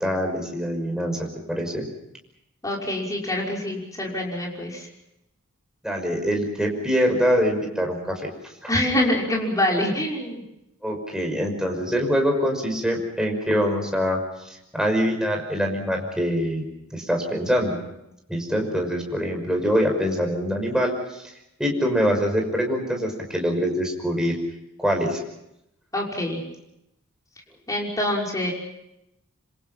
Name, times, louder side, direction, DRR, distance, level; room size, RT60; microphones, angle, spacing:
voice 1, 0.0-1.9 5.8-8.2 8.6-8.7 10.8-14.2 14.5-16.6 16.9-17.8 18.3-21.3 21.6-24.3 24.8-25.2, equal, 5° right, 1 dB, 5.8 m, -24 dB
voice 2, 2.6-4.9 8.7-10.4 25.9-26.4 27.7-28.5, left 1 dB, 15° left, -2 dB, 5.9 m, -25 dB
27.0 x 26.5 x 5.7 m, 0.83 s
head